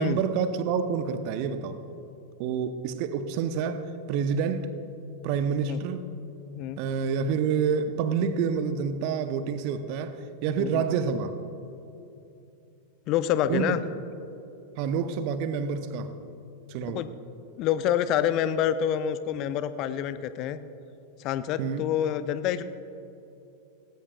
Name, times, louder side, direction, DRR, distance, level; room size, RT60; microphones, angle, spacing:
voice 1, 0.0-1.8 2.4-4.7 5.2-6.1 6.8-11.3 13.5-13.8 14.8-16.1 16.7-17.0 21.6-21.9, right 6 dB, 45° right, 10 dB, 0.9 m, -28 dB
voice 2, 13.1-13.8 16.9-17.1 17.6-20.6 21.2-22.6, left 10 dB, 40° left, 13 dB, 0.6 m, -27 dB
18.5 x 17.0 x 2.4 m, 2.8 s
figure-of-eight pair, 90°, 0 cm